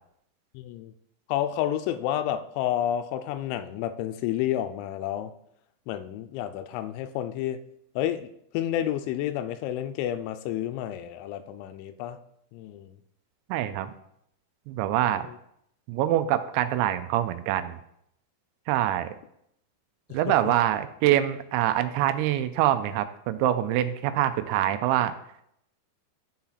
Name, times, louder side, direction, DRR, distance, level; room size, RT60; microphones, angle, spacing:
voice 1, 0.5-0.9 1.3-5.3 5.9-7.6 8.0-12.2 12.5-13.0 15.2-15.4 20.1-20.5, left 11 dB, 90° left, 9 dB, 3.0 m, -30 dB
voice 2, 13.5-13.9 14.7-15.2 15.9-17.8 18.7-19.1 20.1-25.1, right 12 dB, 85° right, 10 dB, 2.9 m, -25 dB
12.5 x 4.2 x 4.0 m, 0.74 s
omnidirectional pair, 5.3 m